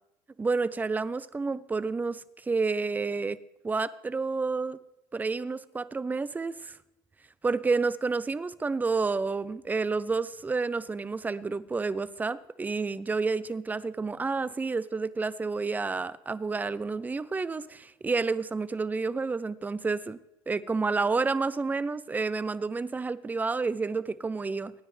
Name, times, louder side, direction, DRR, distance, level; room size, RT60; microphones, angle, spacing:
voice 1, 0.4-3.4 3.6-4.8 5.1-6.8 7.4-20.2 20.5-24.7, right 4 dB, 15° right, 17 dB, 0.5 m, -30 dB
23.5 x 9.7 x 3.2 m, 0.90 s
supercardioid pair, 110°, 11 cm